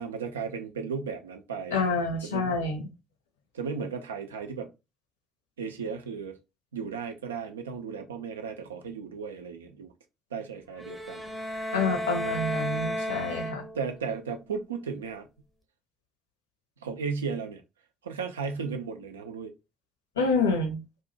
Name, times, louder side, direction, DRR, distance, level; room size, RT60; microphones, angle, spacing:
voice 1, 0.0-1.8 2.2-2.6 3.5-4.7 5.6-6.4 6.7-9.9 10.3-11.2 13.7-15.3 16.8-17.6 18.0-19.5, right 5 dB, 80° right, 0.3 m, -35 dB
voice 2, 1.7-2.9 11.7-13.6 20.2-20.8, left 3 dB, 75° left, 0.5 m, -27 dB
sound 1, 10.8-14.0, equal, 5° right, 0.7 m, -33 dB
2.5 x 2.0 x 3.7 m
figure-of-eight pair, 50°, 0 cm